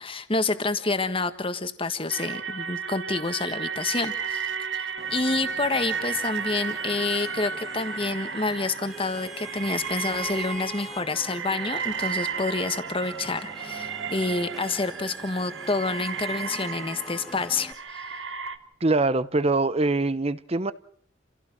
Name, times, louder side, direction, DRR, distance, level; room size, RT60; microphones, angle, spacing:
voice 1, 0.0-18.0, left 3 dB, 30° left, 1.5 m, -28 dB
sound 1, 2.1-18.6, right 6 dB, 70° right, 1.8 m, -34 dB
Vehicle horn car horn honking / Traffic noise roadway noise, 5.0-17.7, equal, ahead, 2.3 m, -44 dB
voice 2, 18.8-20.7, right 2 dB, 30° right, 0.9 m, -23 dB
29.0 x 16.5 x 6.1 m
head